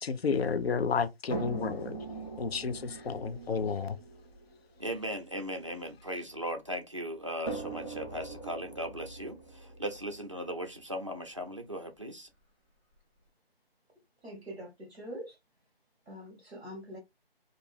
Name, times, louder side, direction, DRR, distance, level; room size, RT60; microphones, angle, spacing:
voice 1, 0.0-2.0 2.4-4.0, left 5 dB, 75° left, 0.5 m, -31 dB
sound 1, 1.3-6.5 7.5-11.4 12.4-12.5 12.9-13.0, right 3 dB, 35° left, 1.1 m, -42 dB
voice 2, 4.8-12.3, equal, 30° right, 0.4 m, -38 dB
voice 3, 14.2-15.3 16.1-17.0, equal, 5° left, 0.7 m, -44 dB
2.5 x 2.2 x 3.3 m
figure-of-eight pair, 165°, 31 cm